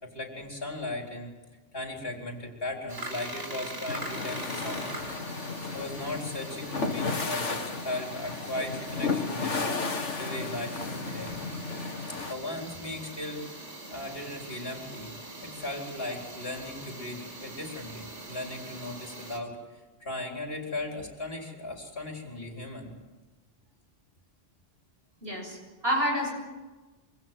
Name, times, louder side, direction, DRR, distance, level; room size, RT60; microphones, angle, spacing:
voice 1, 0.0-1.3 1.7-5.0 5.7-9.6 10.2-11.3 12.1-13.4 13.9-19.6 20.0-22.9, left 2 dB, 55° left, 1 dB, 4.5 m, -37 dB
sound 1, 2.9-19.4, right 2 dB, 75° right, 4.9 m, -43 dB
sound 2, 3.9-12.3, left 4 dB, 90° left, 2.1 m, -33 dB
voice 2, 25.2-26.3, equal, 55° right, 1 dB, 7.7 m, -28 dB
26.5 x 25.0 x 7.7 m, 1.2 s
omnidirectional pair, 1.2 m